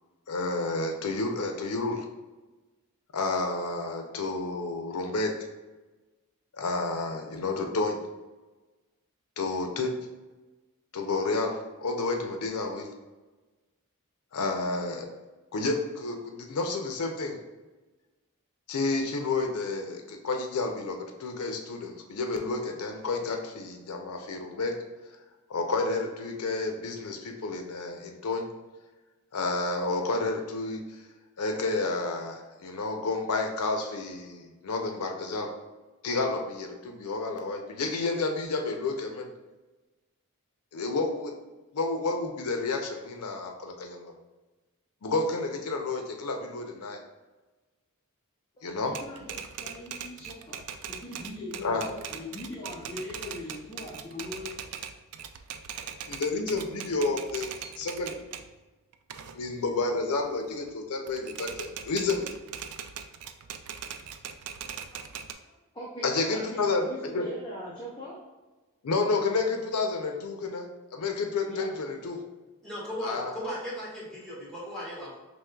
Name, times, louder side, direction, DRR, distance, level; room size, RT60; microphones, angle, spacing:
voice 1, 0.3-2.1 3.1-5.3 6.5-8.0 9.4-9.9 10.9-12.9 14.3-15.1 15.5-17.4 18.7-24.7 25.5-28.5 29.3-31.0 31.4-35.5 36.0-39.3 40.7-41.3 41.7-44.1 45.0-47.0 48.6-48.9 51.6-51.9 56.1-57.5 57.8-58.2 59.3-62.3 66.0-66.9 67.1-67.2 68.8-72.2 73.0-73.3, left 3 dB, 85° left, 3 dB, 0.6 m, -30 dB
voice 2, 48.6-49.3 49.6-50.6 50.9-54.5 64.9-65.0 65.7-68.2 71.5-71.7 73.1-73.2, left 1 dB, 20° left, -7 dB, 0.7 m, -40 dB
Typewriter, 48.9-58.5 58.9-60.7 61.1-65.3, right 8 dB, 85° right, 0.4 m, -41 dB
voice 3, 72.6-75.1, equal, 5° left, -9 dB, 1.5 m, -37 dB
5.2 x 3.1 x 2.3 m, 1.2 s
head